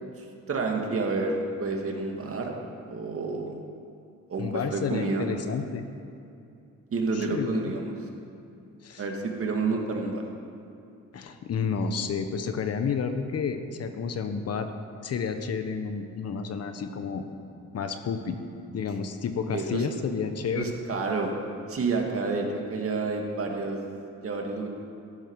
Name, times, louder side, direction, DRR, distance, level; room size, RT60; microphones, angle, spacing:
voice 1, 0.2-2.5 2.9-3.6 4.3-5.3 6.9-7.9 9.0-10.2 19.5-19.9 20.6-21.3 21.7-23.8 24.2-24.7, right 3 dB, 50° right, 1 dB, 2.1 m, -29 dB
voice 2, 4.4-5.8 7.1-7.7 8.8-9.0 11.1-14.7 15.0-17.2 17.7-18.4 18.7-20.7, left 6 dB, 55° left, 8 dB, 1.1 m, -30 dB
14.0 x 11.0 x 4.7 m, 2.6 s
cardioid pair, 90°, 30 cm